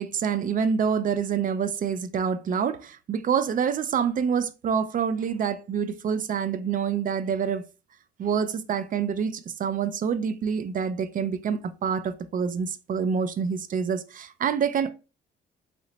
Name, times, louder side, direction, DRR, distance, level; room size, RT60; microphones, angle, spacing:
voice 1, 0.0-7.7 8.2-14.9, right 7 dB, 45° right, 0.4 m, -27 dB
3.0 x 2.0 x 3.8 m
cardioid pair, 90°, 20 cm